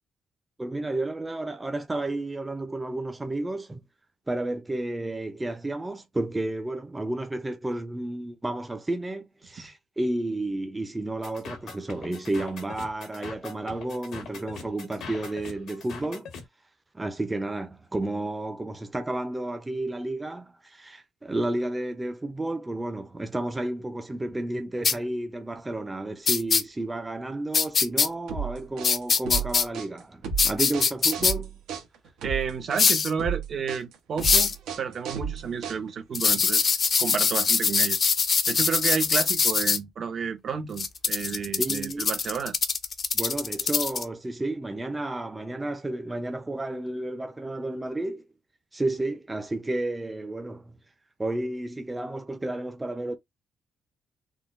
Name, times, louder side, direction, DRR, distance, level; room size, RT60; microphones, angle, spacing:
voice 1, 0.6-3.8 4.3-16.3 16.9-31.6 41.6-42.1 43.1-48.2 48.7-50.8 51.2-53.2, right 2 dB, 15° right, 0.6 m, -31 dB
sound 1, 11.2-16.4, left 5 dB, 80° left, 1.3 m, -42 dB
sound 2, 24.8-24.9 26.3-26.6 27.5-28.1 28.8-29.6 30.4-31.3 32.8-33.1 34.2-34.5 36.1-39.8 40.8-44.0, left 5 dB, 45° left, 0.6 m, -23 dB
sound 3, 28.3-36.1, right 6 dB, 85° right, 1.0 m, -33 dB
voice 2, 32.2-36.7 37.0-38.0 38.5-42.6, right 6 dB, 55° right, 0.7 m, -31 dB
3.7 x 2.1 x 2.5 m
cardioid pair, 90°, 0 cm